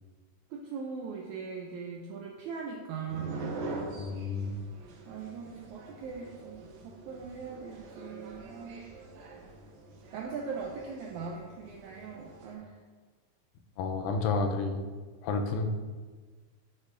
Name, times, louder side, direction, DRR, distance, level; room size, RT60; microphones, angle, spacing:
voice 1, 0.5-3.6 5.1-8.8 10.1-12.8, right 5 dB, 85° right, -1 dB, 1.7 m, -40 dB
sound 1, 3.1-12.5, right 2 dB, 70° right, 1.9 m, -44 dB
voice 2, 4.0-4.6 13.8-14.9 15.2-15.7, left 4 dB, 80° left, 4 dB, 2.3 m, -30 dB
8.3 x 6.2 x 2.5 m, 1.4 s
omnidirectional pair, 4.0 m